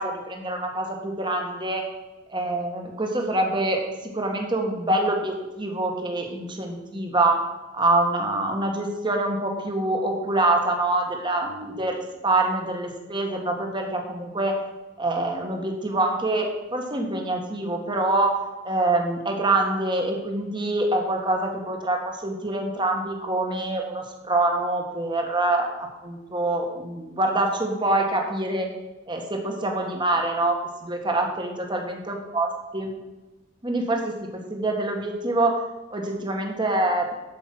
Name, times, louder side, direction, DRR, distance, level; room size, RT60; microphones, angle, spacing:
voice 1, 0.0-1.8 2.3-3.8 4.1-7.4 7.7-14.5 15.0-18.4 18.6-28.7 29.1-32.9 33.6-35.6 35.9-37.1, right 2 dB, 25° right, 2 dB, 1.7 m, -25 dB
12.5 x 5.5 x 6.1 m, 1.1 s
head